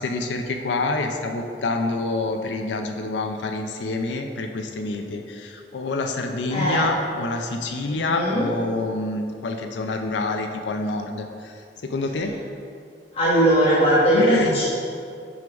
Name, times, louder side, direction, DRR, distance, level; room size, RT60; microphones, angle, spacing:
voice 1, 0.0-11.5 11.8-12.3 14.1-14.6, left 3 dB, 90° left, 4 dB, 0.5 m, -27 dB
voice 2, 6.5-6.9 7.9-8.5 13.1-14.6, right 1 dB, 35° left, -8 dB, 1.2 m, -19 dB
6.0 x 3.8 x 5.9 m, 2.4 s
head